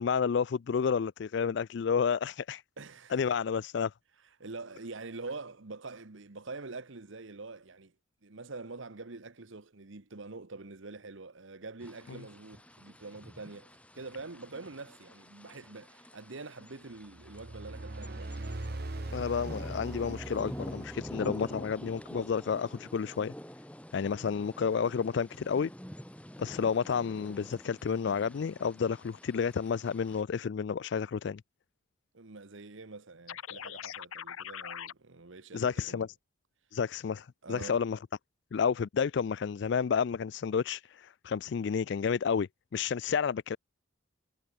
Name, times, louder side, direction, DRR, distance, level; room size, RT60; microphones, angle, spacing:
voice 1, 0.0-2.6 3.1-3.9 19.1-23.3 23.9-25.7 26.4-31.4 35.5-36.1 36.7-38.0 38.5-43.6, left 6 dB, 55° left, 0.3 m, -30 dB
voice 2, 2.8-3.2 4.4-7.9 8.2-18.5 32.1-36.1 37.4-37.9, right 3 dB, 70° right, 1.2 m, -45 dB
sound 1, 11.8-30.2, equal, 5° left, 4.3 m, -47 dB
sound 2, 17.1-21.8, right 2 dB, 50° right, 1.1 m, -41 dB
sound 3, 33.3-34.9, left 9 dB, 85° left, 0.7 m, -41 dB
head